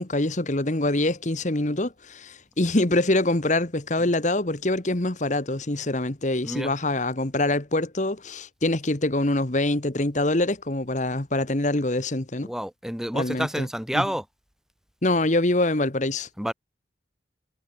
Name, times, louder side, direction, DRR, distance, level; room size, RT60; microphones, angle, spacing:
voice 1, 0.0-12.5 13.1-13.7 13.9-14.1 15.0-16.3, left 2 dB, 40° left, 1.5 m, -25 dB
voice 2, 12.4-14.2 16.4-16.5, equal, 5° right, 2.1 m, -29 dB
head